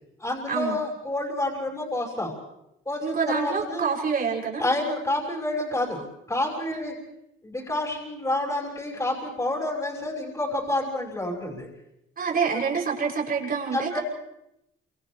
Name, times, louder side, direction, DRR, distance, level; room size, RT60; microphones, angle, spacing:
voice 1, 0.2-2.3 2.8-3.9 4.6-6.9 7.4-11.7 13.7-14.0, left 1 dB, 15° left, -3 dB, 6.0 m, -29 dB
voice 2, 3.0-4.6 6.7-6.8 12.2-14.0, right 5 dB, 50° right, -2 dB, 6.9 m, -27 dB
29.0 x 27.0 x 3.3 m, 0.83 s
cardioid pair, 90°, 20 cm